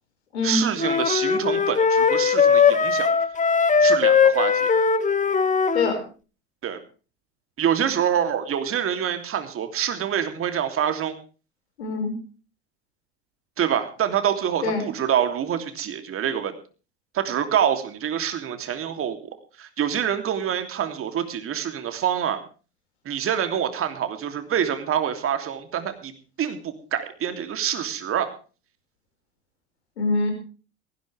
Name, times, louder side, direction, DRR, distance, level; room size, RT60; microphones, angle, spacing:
voice 1, 0.4-3.1 3.8-4.7 6.6-6.8 7.6-11.1 13.6-16.5 17.1-19.2 19.6-22.4 23.0-26.1 26.4-28.3, right 9 dB, 40° right, 8 dB, 3.0 m, -26 dB
sound 1, 0.8-6.0, left 5 dB, 25° left, 1.8 m, -19 dB
voice 2, 11.8-12.1 14.6-14.9 30.0-30.3, left 3 dB, 80° left, 5 dB, 5.3 m, -24 dB
19.0 x 15.5 x 3.4 m, 0.35 s
figure-of-eight pair, 70°, 32 cm